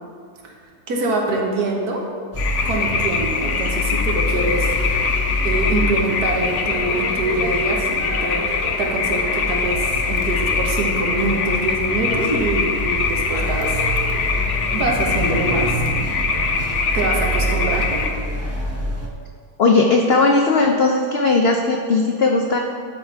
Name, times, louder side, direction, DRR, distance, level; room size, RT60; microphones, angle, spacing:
voice 1, 0.9-2.1 2.6-14.3 14.7-15.9 16.9-18.0, right 2 dB, 70° right, 0 dB, 1.6 m, -24 dB
sound 1, 2.3-19.1, equal, 20° right, 0.4 m, -26 dB
sound 2, 2.4-18.1, left 5 dB, 60° left, 0.8 m, -23 dB
voice 2, 19.6-22.6, left 3 dB, 80° left, 2 dB, 0.5 m, -17 dB
12.0 x 4.2 x 4.6 m, 2.2 s
omnidirectional pair, 1.8 m